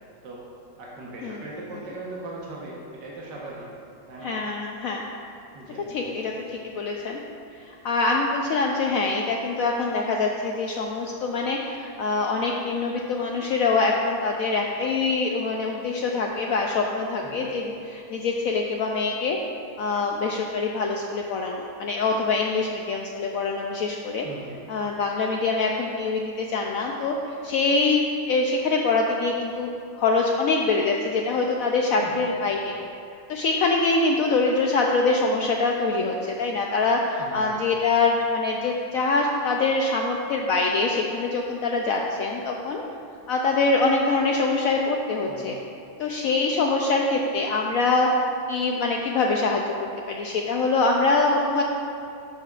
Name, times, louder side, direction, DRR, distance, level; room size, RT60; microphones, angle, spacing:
voice 1, 0.8-3.7 4.1-4.3 5.5-6.4 17.2-17.4 24.2-24.6 32.0-32.3 37.2-37.6 45.3-45.5, right 2 dB, 70° right, -4 dB, 1.7 m, -39 dB
voice 2, 4.2-5.0 5.9-6.3 6.6-7.2 7.7-19.4 19.8-24.3 24.7-27.1 27.4-29.7 30.0-32.8 33.3-42.8 43.3-45.6 46.0-48.1 48.5-49.7 50.1-51.6, left 3 dB, 90° left, 0 dB, 0.7 m, -24 dB
11.5 x 7.1 x 2.4 m, 2.5 s
omnidirectional pair, 2.0 m